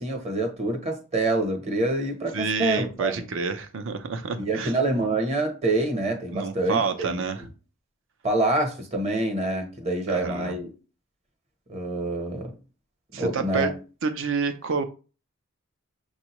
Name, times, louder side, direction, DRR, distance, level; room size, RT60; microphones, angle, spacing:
voice 1, 0.0-3.2 4.4-7.2 8.2-10.7 11.7-12.5 13.2-13.7, right 2 dB, 30° right, 0.9 m, -26 dB
voice 2, 2.3-4.7 6.3-7.5 10.1-10.6 13.1-13.7 14.0-14.8, right 5 dB, 65° right, 0.6 m, -28 dB
6.3 x 2.4 x 3.0 m
head